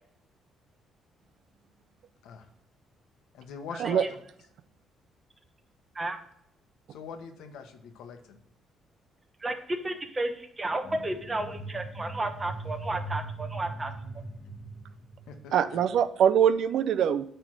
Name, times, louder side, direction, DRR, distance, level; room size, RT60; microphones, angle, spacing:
voice 1, 3.3-4.2 6.9-8.4 15.3-15.8, left 6 dB, 85° left, 7 dB, 1.1 m, -43 dB
voice 2, 9.4-13.9, right 2 dB, 20° right, 7 dB, 1.0 m, -32 dB
sound 1, 10.8-15.9, right 2 dB, 50° left, 1.1 m, -40 dB
voice 3, 15.5-17.4, right 8 dB, 70° right, 12 dB, 0.5 m, -23 dB
8.9 x 3.4 x 6.1 m, 0.72 s
cardioid pair, 115°, 0 cm